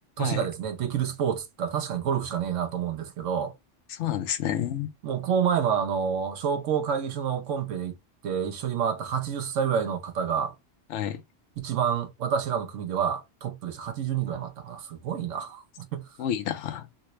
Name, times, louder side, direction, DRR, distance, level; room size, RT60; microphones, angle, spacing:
voice 1, 0.2-3.5 5.0-8.0 8.2-10.5 11.6-16.1, right 8 dB, 85° right, 1.1 m, -28 dB
voice 2, 3.9-4.9 10.9-11.2 16.2-16.9, left 10 dB, 75° left, 0.9 m, -29 dB
3.2 x 2.1 x 2.9 m
omnidirectional pair, 1.2 m